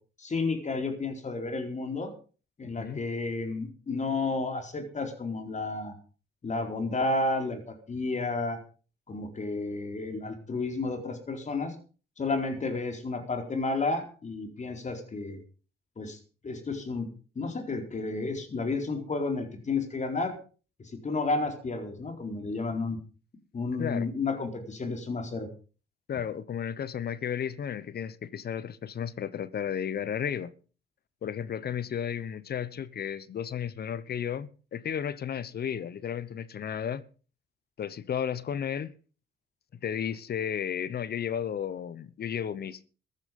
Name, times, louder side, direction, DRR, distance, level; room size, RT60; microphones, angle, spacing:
voice 1, 0.2-2.1 2.6-5.9 6.4-8.6 9.1-11.8 12.2-15.4 16.0-16.2 16.4-17.1 17.4-20.4 20.9-23.0 23.5-25.5, left 3 dB, 35° left, 4.2 m, -31 dB
voice 2, 26.1-30.5 31.2-37.0 37.8-38.9 39.8-42.9, left 8 dB, 50° left, 1.0 m, -33 dB
15.0 x 12.0 x 5.3 m
cardioid pair, 90°, 20 cm